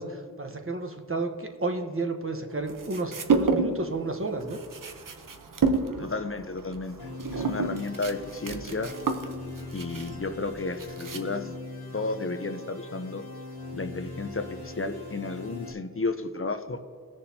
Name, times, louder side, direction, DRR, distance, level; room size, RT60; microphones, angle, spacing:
voice 1, 0.0-4.6, right 2 dB, 35° right, 5 dB, 1.1 m, -32 dB
sound 1, 2.7-3.9 4.2-11.5, right 4 dB, 60° right, 0.9 m, -29 dB
voice 2, 6.0-8.9 9.7-11.5 11.9-13.2 13.7-16.8, left 3 dB, 35° left, 8 dB, 0.7 m, -33 dB
sound 2, 7.0-15.7, left 3 dB, 85° left, 2.0 m, -41 dB
19.5 x 6.6 x 2.8 m, 2.3 s
wide cardioid pair, 60°, 37 cm